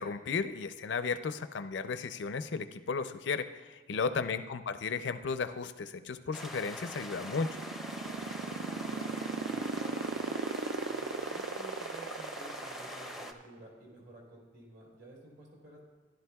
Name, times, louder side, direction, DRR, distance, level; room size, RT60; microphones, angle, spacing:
voice 1, 0.0-7.5, left 5 dB, 75° left, 11 dB, 0.5 m, -34 dB
sound 1, 6.3-13.3, left 1 dB, ahead, 0.5 m, -43 dB
sound 2, 6.9-13.5, right 4 dB, 80° right, 0.4 m, -35 dB
voice 2, 8.0-10.3 10.9-15.9, right 2 dB, 60° right, -3 dB, 3.3 m, -52 dB
15.5 x 11.0 x 2.3 m, 1.4 s
head